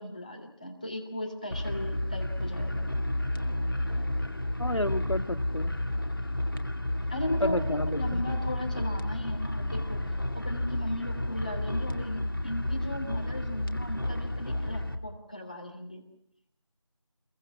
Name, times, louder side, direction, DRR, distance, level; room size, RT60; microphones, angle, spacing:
voice 1, 0.0-2.9 7.1-10.0 10.3-16.0, left 1 dB, 15° left, 2 dB, 3.1 m, -37 dB
sound 1, 1.5-15.0, left 1 dB, 45° left, 2.3 m, -31 dB
voice 2, 4.6-5.8 7.4-8.3, left 1 dB, 70° left, 10 dB, 2.2 m, -31 dB
30.0 x 23.0 x 6.0 m, 0.72 s
figure-of-eight pair, 175°, 16 cm